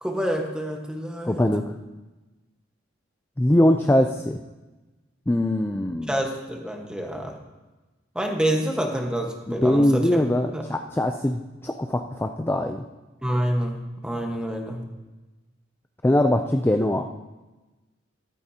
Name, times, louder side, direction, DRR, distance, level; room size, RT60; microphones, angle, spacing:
voice 1, 0.0-1.4 6.1-7.4 8.1-10.7 13.2-14.8, right 1 dB, 5° right, 2 dB, 1.3 m, -27 dB
voice 2, 1.3-1.6 3.4-4.4 5.3-6.1 9.5-12.8 16.0-17.1, left 1 dB, 10° left, 5 dB, 0.4 m, -22 dB
14.0 x 12.5 x 2.8 m, 1.1 s
head